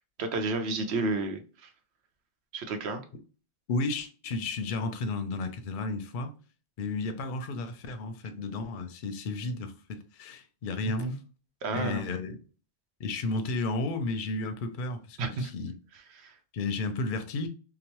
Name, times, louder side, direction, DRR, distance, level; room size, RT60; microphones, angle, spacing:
voice 1, 0.2-1.7 2.5-3.0 10.8-11.2 11.6-12.0 15.2-15.5 16.1-16.4, right 3 dB, 90° right, 0.9 m, -31 dB
voice 2, 3.7-6.3 6.8-11.1 11.7-12.4 13.0-15.7 16.5-17.5, left 3 dB, 60° left, 0.6 m, -33 dB
2.9 x 2.0 x 2.9 m
omnidirectional pair, 1.1 m